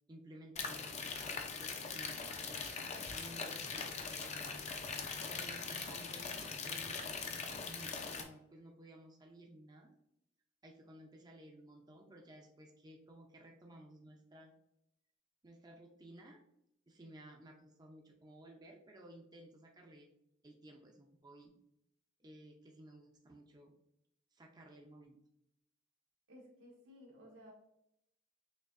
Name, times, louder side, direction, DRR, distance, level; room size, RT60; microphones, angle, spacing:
voice 1, 0.1-2.7 3.1-4.7 5.2-9.9 10.6-14.5 15.4-16.4 16.9-20.1 20.4-21.5 22.2-23.7 24.3-25.2, right 1 dB, 20° right, 1 dB, 0.5 m, -56 dB
sound 1, 0.6-8.2, left 5 dB, 35° left, 0.5 m, -41 dB
voice 2, 26.3-27.5, equal, 90° right, -2 dB, 1.7 m, -57 dB
6.3 x 2.8 x 2.5 m, 0.79 s
head